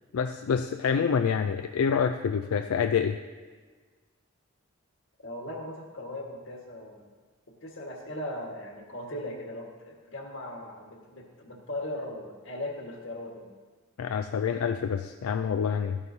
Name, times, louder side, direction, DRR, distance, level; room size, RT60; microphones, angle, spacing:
voice 1, 0.1-3.2 14.0-16.0, left 6 dB, 85° left, 7 dB, 0.4 m, -27 dB
voice 2, 5.2-7.1 7.6-13.5, left 1 dB, 60° left, 1 dB, 1.6 m, -38 dB
13.5 x 11.0 x 2.8 m, 1.5 s
head